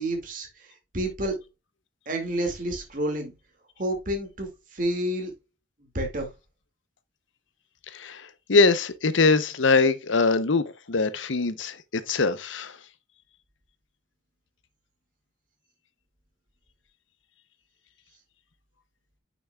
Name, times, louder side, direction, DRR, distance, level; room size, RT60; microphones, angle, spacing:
voice 1, 0.0-1.4 2.1-3.3 3.8-5.3 5.9-6.3, right 1 dB, 45° right, 2.2 m, -29 dB
voice 2, 7.9-12.8, left 3 dB, 85° left, 0.8 m, -23 dB
9.0 x 6.2 x 2.3 m
head